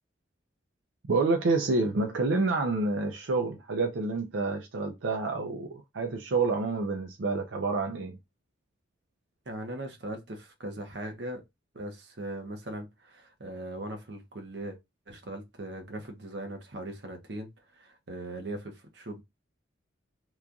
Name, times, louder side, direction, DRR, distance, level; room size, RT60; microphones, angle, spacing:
voice 1, 1.1-8.2, right 3 dB, 85° right, 0.6 m, -28 dB
voice 2, 9.5-11.4 11.7-14.8 15.1-19.2, right 1 dB, 60° right, 0.9 m, -39 dB
3.1 x 2.3 x 3.7 m
head